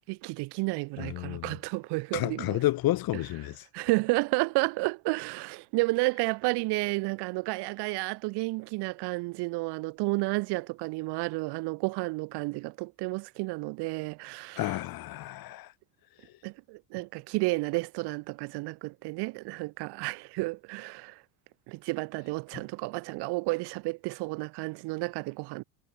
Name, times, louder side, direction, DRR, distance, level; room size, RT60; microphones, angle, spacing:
voice 1, 0.1-2.6 3.7-14.7 16.4-21.2 21.7-25.6, right 25 dB, 60° right, 1.7 m, -31 dB
voice 2, 1.0-1.5 2.1-3.6 14.6-15.7, left 16 dB, 50° left, 3.3 m, -30 dB
supercardioid pair, 100°, 46 cm